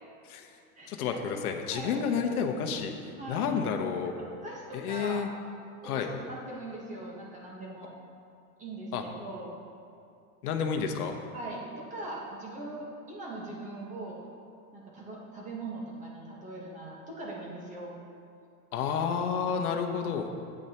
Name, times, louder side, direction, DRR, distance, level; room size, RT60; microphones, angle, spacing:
voice 1, 0.9-2.9 3.3-4.1 4.7-5.3 5.8-6.1 8.9-9.0 10.4-11.2 18.7-20.3, left 6 dB, 85° left, 4 dB, 1.0 m, -30 dB
voice 2, 1.7-2.0 3.2-3.5 4.3-5.2 5.8-7.9 8.6-9.5 11.3-14.2 14.7-18.0, right 2 dB, 15° right, -3 dB, 1.3 m, -41 dB
11.0 x 9.0 x 2.9 m, 2.5 s
supercardioid pair, 155°, 43 cm